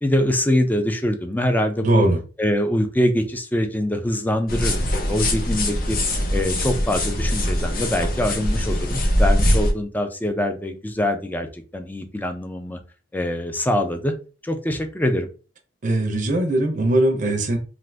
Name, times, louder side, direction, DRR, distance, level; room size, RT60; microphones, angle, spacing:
voice 1, 0.0-2.1 2.4-6.0 6.3-12.8 13.1-14.1 14.4-15.3, left 1 dB, 10° left, 6 dB, 0.4 m, -24 dB
voice 2, 1.8-2.2 15.8-17.6, right 1 dB, 45° right, 4 dB, 0.6 m, -20 dB
sound 1, 4.5-9.7, left 1 dB, 50° left, 0.7 m, -22 dB
2.5 x 2.5 x 3.2 m, 0.35 s
head